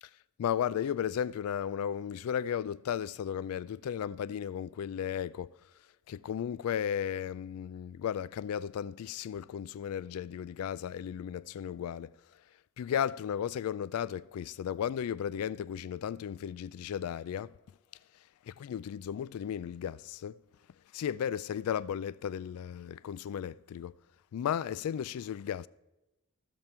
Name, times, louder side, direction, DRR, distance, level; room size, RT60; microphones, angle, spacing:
voice 1, 0.4-5.5 6.1-12.1 12.8-17.5 18.5-20.4 20.9-24.0 24.3-25.7, left 9 dB, 85° left, 0.3 m, -35 dB
15.5 x 7.5 x 4.4 m
head